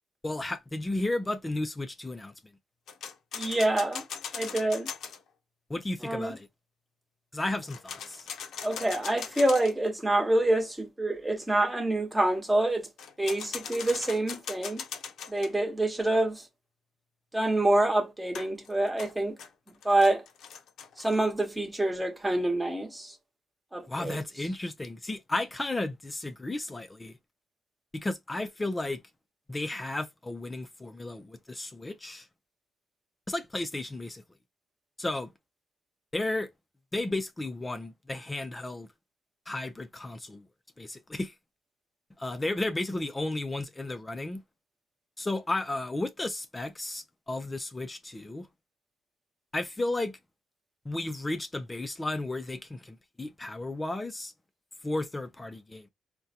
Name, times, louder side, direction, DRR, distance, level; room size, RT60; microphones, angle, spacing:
voice 1, 0.2-2.3 5.7-6.5 7.3-8.3 23.9-27.1 27.9-29.0 29.5-32.3 33.3-34.2 35.0-35.3 36.1-36.5 36.9-38.9 39.5-40.5 40.8-41.3 42.2-44.4 45.2-48.5 49.5-50.2 50.8-54.3 54.8-55.9, left 2 dB, 20° left, 0.5 m, -33 dB
sound 1, 2.9-5.2 7.6-9.9 13.0-15.5 18.3-21.2, left 7 dB, 70° left, 0.6 m, -40 dB
voice 2, 3.4-4.0 4.3-4.9 6.0-6.3 8.6-12.9 13.2-14.8 15.3-16.4 17.3-19.3 19.8-20.2 21.0-23.1 23.7-24.2, right 1 dB, 10° right, 1.0 m, -26 dB
3.6 x 2.2 x 2.8 m
cardioid pair, 90°, 0 cm